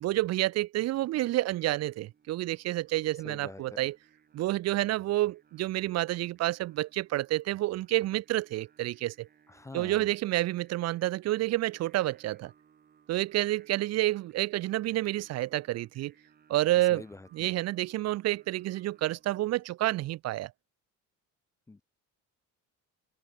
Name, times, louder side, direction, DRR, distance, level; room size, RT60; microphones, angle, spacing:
voice 1, 0.0-4.0 4.3-9.3 9.7-12.5 13.1-16.1 16.5-17.0 17.3-20.5, right 16 dB, 55° right, 0.7 m, -29 dB
Singing, 1.1-19.4, right 7 dB, 30° right, 6.6 m, -64 dB
voice 2, 3.2-3.8 9.5-10.1 16.9-17.5 21.7-21.8, left 2 dB, 10° left, 0.8 m, -46 dB
cardioid pair, 180°, 31 cm